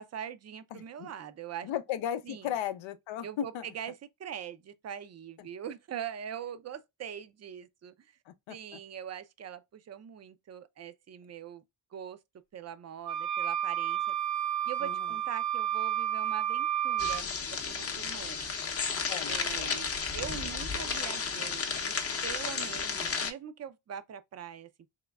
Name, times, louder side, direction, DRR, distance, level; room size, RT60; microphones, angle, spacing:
voice 1, 0.0-1.7 2.2-2.5 3.2-8.1 8.5-11.6 11.9-12.2 12.5-14.1 14.7-18.5 19.3-21.9 22.2-24.7, right 9 dB, 35° right, 0.4 m, -42 dB
voice 2, 0.7-1.1 1.6-3.7 5.4-5.5 8.3-8.8 14.8-15.1 19.1-19.8, left 10 dB, 85° left, 0.6 m, -36 dB
sound 1, 13.0-17.2, right 11 dB, 55° right, 1.0 m, -31 dB
sound 2, 17.0-23.3, left 5 dB, 30° left, 0.6 m, -33 dB
3.6 x 3.0 x 2.2 m
cardioid pair, 110°, 45 cm